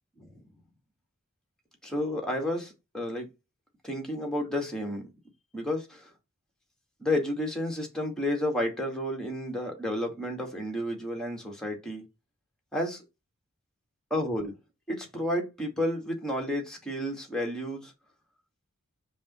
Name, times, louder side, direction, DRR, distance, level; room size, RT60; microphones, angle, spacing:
voice 1, 1.8-3.3 3.8-5.0 5.5-6.1 7.0-12.0 12.7-13.0 14.1-14.5 14.9-17.9, left 1 dB, 5° left, 2.1 m, -31 dB
5.4 x 3.5 x 5.4 m
head